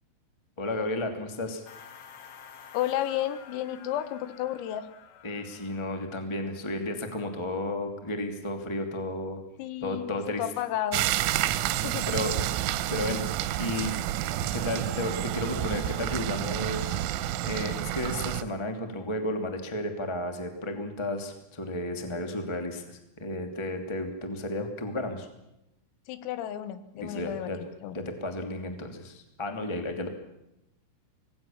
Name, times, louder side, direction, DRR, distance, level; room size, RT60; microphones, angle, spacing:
voice 1, 0.6-1.6 5.2-9.4 9.8-10.4 11.5-11.7 12.1-12.3 12.9-13.2 13.6-13.9 14.5-17.0 17.4-25.3 27.0-27.6 27.9-30.1, left 1 dB, 20° left, 6 dB, 0.7 m, -33 dB
sound 1, 1.7-6.2, left 8 dB, 65° left, 3.5 m, -50 dB
voice 2, 2.7-4.9 9.6-10.1 10.4-11.0 11.8-12.1 26.1-28.0, left 12 dB, 85° left, 13 dB, 4.0 m, -32 dB
sound 2, 10.9-18.4, right 13 dB, 80° right, 3.5 m, -29 dB
25.5 x 19.0 x 7.3 m, 0.89 s
omnidirectional pair, 5.9 m